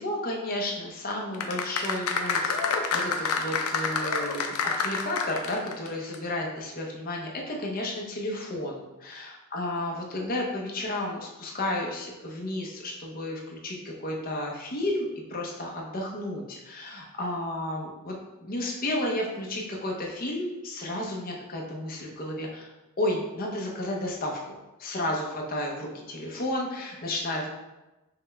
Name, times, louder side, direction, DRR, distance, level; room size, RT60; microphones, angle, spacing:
voice 1, 0.0-22.7 23.0-24.4 24.8-27.5, left 1 dB, 40° left, -1 dB, 0.7 m, -32 dB
sound 1, 1.3-5.9 6.1-6.2, left 4 dB, 75° left, 0.4 m, -28 dB
5.6 x 2.2 x 3.3 m, 1.0 s
head